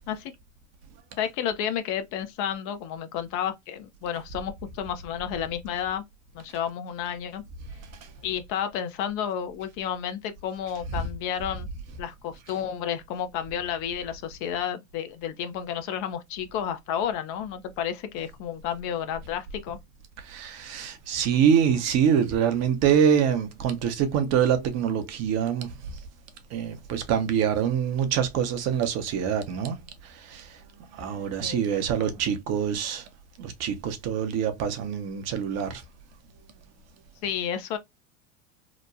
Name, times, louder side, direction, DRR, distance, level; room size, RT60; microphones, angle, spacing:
voice 1, 1.2-6.0 6.3-7.4 8.2-11.7 12.0-19.8 31.4-32.2 37.2-37.8, left 9 dB, 50° left, 0.6 m, -31 dB
voice 2, 20.2-25.7 26.5-30.6 30.9-33.1 33.4-35.8, right 8 dB, 40° right, 0.7 m, -25 dB
2.9 x 2.1 x 2.4 m
hypercardioid pair, 90°, 39 cm